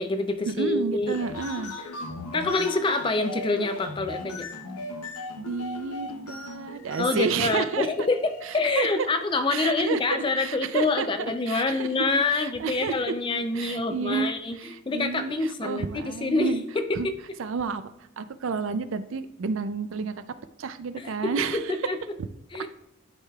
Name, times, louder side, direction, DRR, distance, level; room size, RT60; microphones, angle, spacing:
voice 1, 0.0-1.2 2.3-4.5 7.0-17.1 21.0-22.0 22.5-22.7, left 3 dB, 20° left, 8 dB, 0.4 m, -26 dB
voice 2, 0.6-1.7 5.3-7.9 8.7-8.9 9.5-11.1 11.5-11.9 12.6-12.9 13.5-14.3 14.6-15.4 15.6-16.6 17.0-17.1 17.4-17.9 18.2-20.1 20.6-21.7 22.2-22.3, right 5 dB, 60° right, 12 dB, 0.4 m, -30 dB
sound 1, 1.0-9.2, left 2 dB, 90° left, 0.8 m, -38 dB
11.5 x 4.8 x 2.3 m, 0.79 s
head